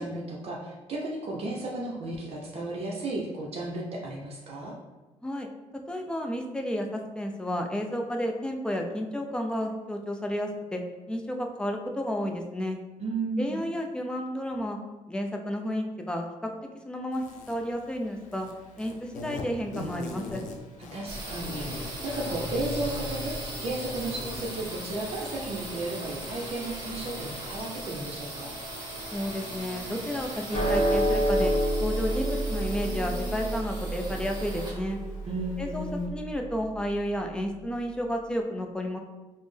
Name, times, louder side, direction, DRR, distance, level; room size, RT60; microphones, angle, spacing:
voice 1, 0.0-4.7 13.0-13.7 20.9-23.3 23.6-28.5 35.2-36.1, right 2 dB, 50° right, -3 dB, 0.6 m, -34 dB
voice 2, 5.9-10.8 11.1-12.8 13.4-14.8 15.1-16.5 16.8-18.5 18.8-20.4 29.1-31.5 31.8-35.0 35.6-39.0, equal, 5° left, 2 dB, 0.5 m, -32 dB
Insect, 17.1-36.1, left 2 dB, 80° left, 0.5 m, -45 dB
sound 1, 21.0-36.7, right 1 dB, 35° right, 1.2 m, -38 dB
sound 2, 30.5-37.1, right 1 dB, 40° left, 0.9 m, -29 dB
4.0 x 2.0 x 3.2 m, 1.2 s
cardioid pair, 85°, 13 cm